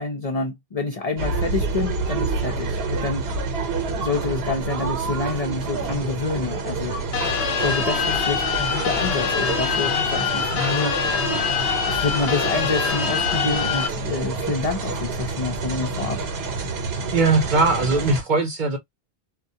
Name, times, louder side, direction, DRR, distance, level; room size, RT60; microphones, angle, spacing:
voice 1, 0.0-3.3 4.0-7.0 7.6-11.0 11.9-16.2, left 3 dB, 45° left, 0.6 m, -27 dB
sound 1, 1.2-18.2, right 3 dB, 80° right, 1.0 m, -28 dB
sound 2, 7.1-13.9, left 6 dB, 90° left, 0.9 m, -24 dB
voice 2, 17.1-18.8, right 3 dB, 55° right, 0.8 m, -20 dB
2.3 x 2.1 x 2.7 m
omnidirectional pair, 1.0 m